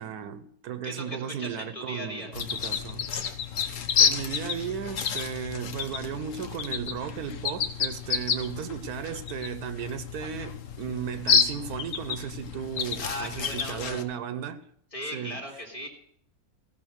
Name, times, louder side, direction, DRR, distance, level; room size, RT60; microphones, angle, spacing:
voice 1, 0.0-3.1 4.0-14.6 15.1-15.4, right 8 dB, 80° right, 1.2 m, -35 dB
voice 2, 0.8-2.3 13.0-14.0 14.9-15.9, left 1 dB, 20° left, 2.3 m, -37 dB
sound 1, 2.3-14.0, left 7 dB, 60° left, 1.1 m, -30 dB
16.0 x 5.8 x 6.4 m
omnidirectional pair, 1.6 m